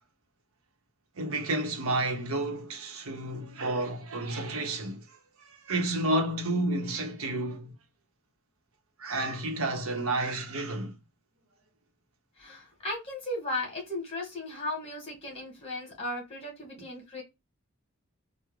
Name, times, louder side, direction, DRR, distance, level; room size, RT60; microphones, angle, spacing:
voice 1, 1.1-7.8 9.0-11.0, right 2 dB, 75° right, 0.8 m, -31 dB
voice 2, 12.4-17.2, left 1 dB, 25° left, 1.4 m, -36 dB
3.6 x 2.1 x 3.0 m
head